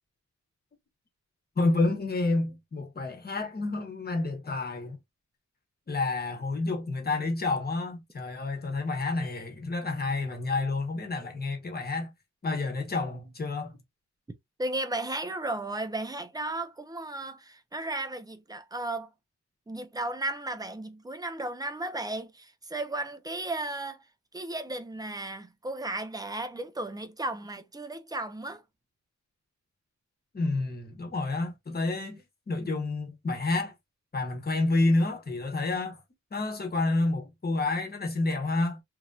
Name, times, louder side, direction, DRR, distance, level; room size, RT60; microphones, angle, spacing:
voice 1, 1.6-5.0 5.9-12.1 12.4-13.7 30.3-32.2 32.5-33.7 34.1-36.0 36.3-38.8, left 2 dB, 30° left, 1.0 m, -29 dB
voice 2, 14.6-19.1 19.7-24.0 24.3-28.6, right 2 dB, 15° right, 0.5 m, -34 dB
3.1 x 2.6 x 2.3 m
wide cardioid pair, 135°, 30 cm